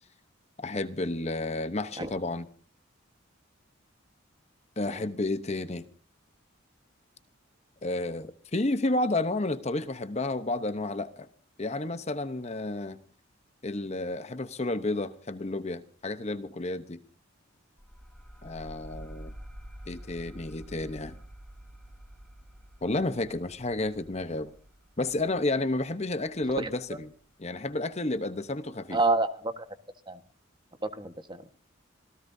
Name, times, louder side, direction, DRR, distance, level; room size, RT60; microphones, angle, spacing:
voice 1, 0.6-2.5 4.8-5.9 7.8-11.3 11.6-13.0 13.6-17.0 18.4-19.3 19.9-21.2 22.8-24.5 25.0-27.1 27.4-29.0, left 2 dB, 35° left, 0.9 m, -31 dB
sound 1, 17.8-27.0, equal, ahead, 6.0 m, -48 dB
voice 2, 28.9-29.7 30.1-30.2 30.8-31.4, right 3 dB, 25° right, 1.4 m, -28 dB
26.5 x 17.0 x 2.7 m
head